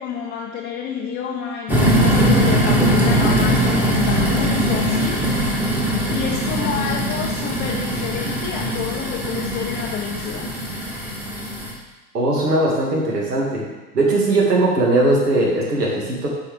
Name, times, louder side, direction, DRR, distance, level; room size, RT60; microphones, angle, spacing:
voice 1, 0.0-5.2 6.1-10.5, left 8 dB, 25° left, -1 dB, 0.5 m, -29 dB
sound 1, 1.7-11.7, equal, 5° right, 1.2 m, -20 dB
voice 2, 12.1-13.6 13.9-16.3, right 2 dB, 85° right, -3 dB, 2.0 m, -19 dB
8.4 x 4.8 x 3.3 m, 1.1 s
hypercardioid pair, 100°, 47 cm